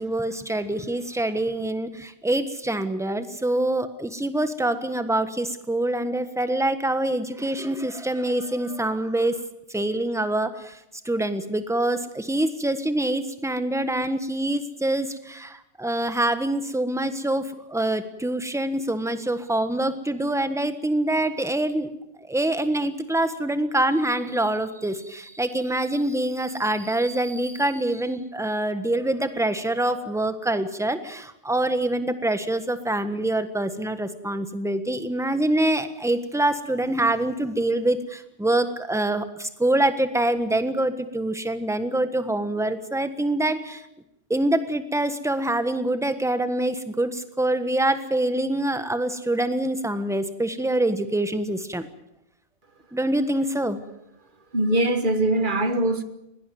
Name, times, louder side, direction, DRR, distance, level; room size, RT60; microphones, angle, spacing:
voice 1, 0.0-9.4 9.7-10.8 11.0-21.9 22.2-43.8 44.3-51.9 52.9-53.8, right 1 dB, ahead, 1.3 m, -25 dB
voice 2, 54.5-56.0, right 1 dB, 35° right, 1.7 m, -22 dB
21.0 x 17.5 x 9.3 m
omnidirectional pair, 1.4 m